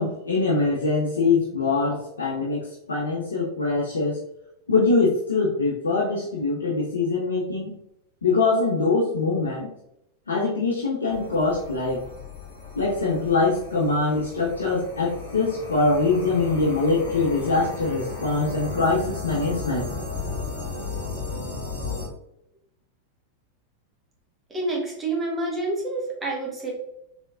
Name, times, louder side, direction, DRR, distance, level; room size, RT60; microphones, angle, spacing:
voice 1, 0.0-4.2 4.7-7.7 8.2-9.7 10.3-12.0 12.8-19.9, left 3 dB, 70° left, -3 dB, 0.5 m, -23 dB
sound 1, 11.1-22.1, left 3 dB, 90° right, 1.5 m, -35 dB
voice 2, 24.5-26.7, right 2 dB, 15° right, -3 dB, 1.2 m, -28 dB
3.6 x 3.3 x 2.5 m, 0.80 s
figure-of-eight pair, 90°, 0 cm